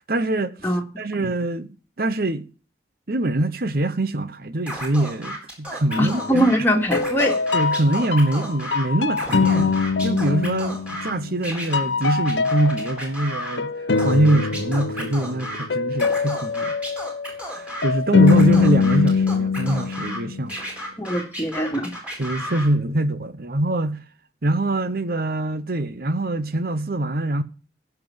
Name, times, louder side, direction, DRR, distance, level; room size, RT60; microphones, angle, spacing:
voice 1, 0.1-0.5 1.0-2.5 3.1-6.5 7.5-9.7 10.0-16.7 17.3-20.6 22.2-24.0 24.4-27.4, right 1 dB, 55° right, 0.9 m, -23 dB
Scratching (performance technique), 4.7-6.6 6.9-8.8 9.1-11.1 11.4-13.6 14.0-15.6 15.9-17.9 18.2-20.2 20.5-22.7, equal, 10° right, 4.3 m, -33 dB
sound 1, 5.9-6.5 6.9-11.5 11.7-20.5, left 4 dB, 90° left, 0.9 m, -23 dB
voice 2, 6.0-7.4 21.0-21.9, equal, 15° left, 2.2 m, -22 dB
14.5 x 6.0 x 7.2 m
head